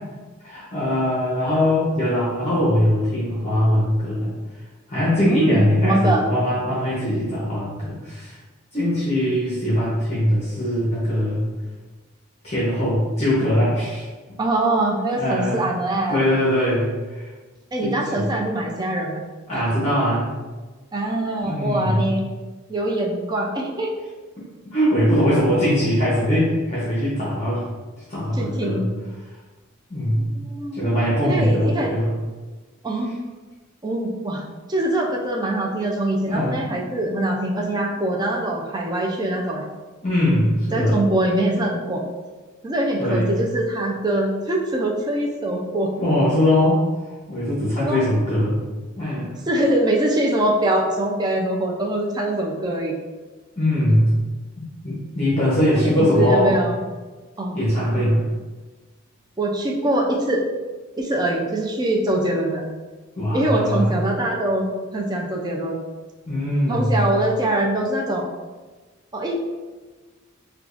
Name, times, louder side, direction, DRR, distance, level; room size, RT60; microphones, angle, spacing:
voice 1, 0.4-4.3 4.9-8.4 8.7-11.4 12.4-14.0 15.2-15.6 16.1-17.3 17.8-18.3 19.5-20.3 21.4-22.0 24.7-27.6 28.1-28.9 29.9-30.2 30.7-32.1 36.3-36.5 37.9-38.0 40.0-41.0 43.0-43.3 46.0-46.8 47.3-48.6 49.0-49.3 53.6-54.1 54.8-56.6 57.5-58.2 63.2-64.0 66.3-67.0, equal, 35° left, -8 dB, 0.9 m, -21 dB
voice 2, 5.2-6.3 14.4-16.2 17.7-19.2 19.5-19.6 20.9-22.2 22.7-23.9 28.3-28.9 30.2-31.9 32.8-33.1 33.8-34.4 34.7-39.7 40.7-42.0 42.6-45.9 47.8-48.0 49.5-53.0 55.8-56.8 57.4-57.6 57.9-58.0 59.4-60.4 61.0-62.6 63.3-65.8 66.7-68.3 69.1-69.3, right 1 dB, 20° right, -1 dB, 0.4 m, -23 dB
4.7 x 2.3 x 2.5 m, 1.3 s
head